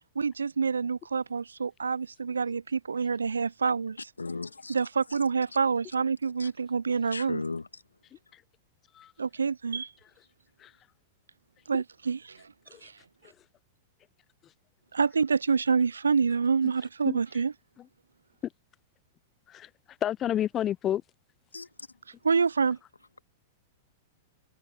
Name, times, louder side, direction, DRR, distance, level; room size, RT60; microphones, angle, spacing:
voice 1, 0.2-4.0 4.7-7.4 9.2-9.9 11.7-12.4 12.8-12.9 14.9-17.5 22.2-22.8, right 5 dB, 80° right, 0.5 m, -27 dB
voice 2, 4.2-4.8 5.1-5.2 6.4-6.5 7.1-7.7 21.5-21.7, left 3 dB, 85° left, 1.9 m, -36 dB
voice 3, 20.0-21.0, left 11 dB, 30° left, 0.5 m, -30 dB
figure-of-eight pair, 100°, 0 cm